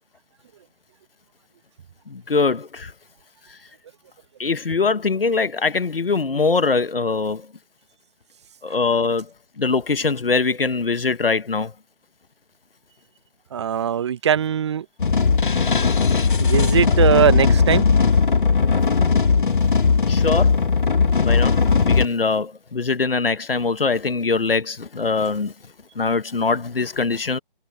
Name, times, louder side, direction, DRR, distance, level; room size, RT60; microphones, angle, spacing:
voice 1, 2.1-2.9 3.5-3.6 4.4-7.5 8.6-9.3 9.6-11.7 20.1-20.6 21.2-25.5 25.9-27.4, left 4 dB, 75° left, 1.5 m, -22 dB
voice 2, 13.5-14.8 16.4-17.8, right 9 dB, 30° right, 1.1 m, -20 dB
sound 1, 15.0-22.1, left 5 dB, 60° left, 1.8 m, -18 dB
figure-of-eight pair, 150°, 29 cm